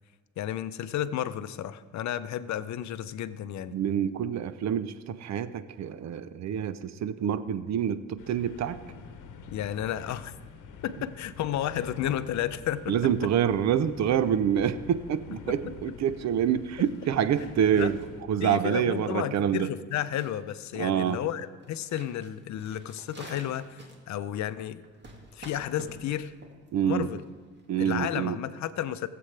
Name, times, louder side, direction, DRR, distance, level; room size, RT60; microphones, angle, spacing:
voice 1, 0.4-3.8 9.5-10.3 10.8-12.9 17.4-17.5 17.8-17.9 18.4-24.9 25.3-26.3 26.8-27.2 27.8-29.1, left 11 dB, 65° left, 14 dB, 0.6 m, -32 dB
voice 2, 3.7-8.8 12.9-18.0 18.3-19.7 20.8-21.2 26.7-27.1 27.7-28.4, right 9 dB, 65° right, 14 dB, 0.6 m, -27 dB
sound 1, 8.2-18.2, left 6 dB, 85° left, 0.9 m, -47 dB
sound 2, 16.5-28.1, right 2 dB, 35° right, 2.1 m, -51 dB
19.0 x 7.7 x 3.3 m, 1.5 s
cardioid pair, 90°, 30 cm